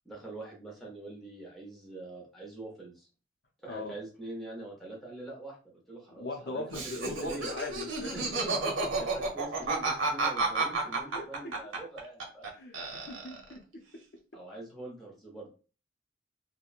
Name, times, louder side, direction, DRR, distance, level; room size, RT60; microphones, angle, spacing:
voice 1, 0.0-3.1 3.6-7.5 8.1-8.6 9.0-12.5 14.3-15.5, right 2 dB, ahead, -3 dB, 0.7 m, -44 dB
voice 2, 6.1-8.1 11.1-11.3 12.5-13.6, left 2 dB, 55° left, 1 dB, 0.6 m, -39 dB
Laughter, 6.7-12.5 12.7-13.5, right 3 dB, 90° right, 0.8 m, -31 dB
2.9 x 2.1 x 2.4 m, 0.35 s
head